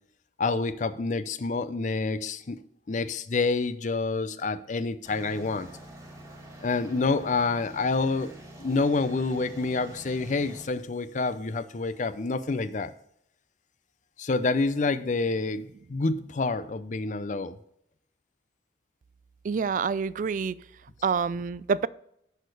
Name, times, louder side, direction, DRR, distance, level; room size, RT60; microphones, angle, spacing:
voice 1, 0.4-2.6 2.9-5.7 6.6-12.9 14.2-17.6, left 3 dB, 45° left, 0.5 m, -28 dB
sound 1, 5.0-10.7, right 1 dB, 15° right, 1.6 m, -46 dB
voice 2, 19.4-20.6 21.0-21.9, right 5 dB, 45° right, 0.3 m, -27 dB
6.6 x 6.4 x 4.8 m
head